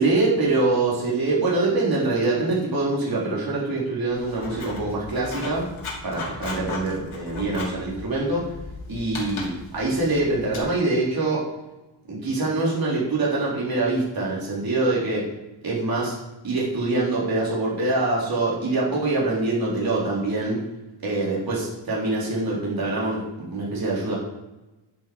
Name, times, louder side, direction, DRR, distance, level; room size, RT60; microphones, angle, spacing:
voice 1, 0.0-5.6 6.0-8.4 8.9-11.4 12.1-15.2 15.6-16.1 16.4-20.6 21.0-24.2, right 2 dB, 50° right, -5 dB, 3.9 m, -24 dB
Writing, 4.1-10.6, left 3 dB, 90° left, 2.4 m, -37 dB
10.5 x 7.9 x 5.4 m, 0.99 s
wide cardioid pair, 155°, 47 cm